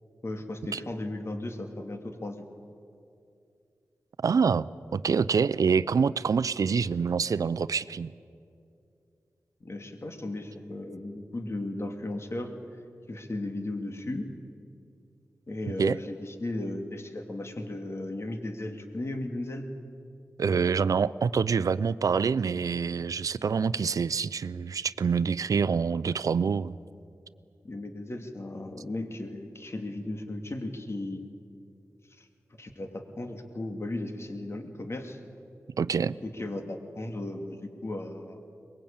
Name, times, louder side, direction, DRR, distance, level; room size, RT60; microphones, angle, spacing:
voice 1, 0.2-2.4 9.6-12.5 13.1-14.3 15.5-19.7 27.6-31.2 32.2-32.3 32.6-35.2 36.2-38.4, left 1 dB, 50° left, 5 dB, 2.5 m, -36 dB
voice 2, 4.2-8.1 15.8-16.0 20.4-26.8 35.8-36.1, right 6 dB, 80° right, 17 dB, 0.5 m, -26 dB
23.0 x 21.0 x 8.8 m, 2.5 s
cardioid pair, 50°, 6 cm